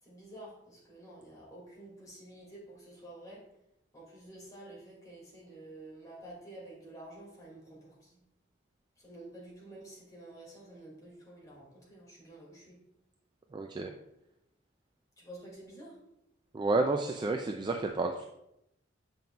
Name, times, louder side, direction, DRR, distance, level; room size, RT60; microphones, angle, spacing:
voice 1, 0.0-3.4 3.9-8.2 9.0-12.8 15.2-16.0, right 1 dB, 20° left, -4 dB, 2.1 m, -50 dB
voice 2, 13.5-13.9 16.5-18.2, right 3 dB, 25° right, 3 dB, 0.3 m, -30 dB
7.6 x 5.3 x 2.3 m, 0.83 s
head